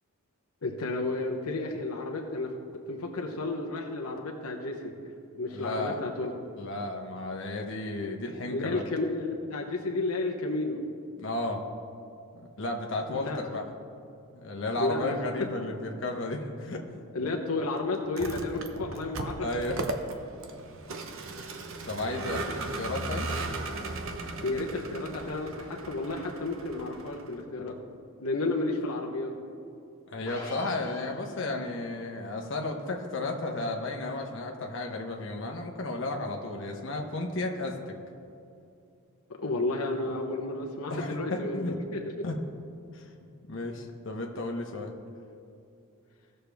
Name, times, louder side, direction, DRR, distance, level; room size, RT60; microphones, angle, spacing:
voice 1, 0.6-5.1 5.4-6.3 8.5-10.8 13.1-13.4 14.8-15.5 17.1-19.5 24.4-27.8 28.2-29.3 39.3-42.1, left 2 dB, 80° left, 1 dB, 0.9 m, -32 dB
voice 2, 5.5-6.0 6.6-8.8 11.2-11.6 12.3-13.6 14.3-16.8 19.4-19.8 21.9-23.3 30.1-37.9 40.9-41.7 42.2-42.3 42.9-44.9, left 2 dB, 55° left, 1 dB, 1.0 m, -33 dB
Vehicle, 18.0-27.4, right 2 dB, 65° right, 0.8 m, -37 dB
sound 1, 30.2-31.6, equal, 15° left, 2.4 m, -41 dB
17.0 x 6.6 x 3.5 m, 2.6 s
head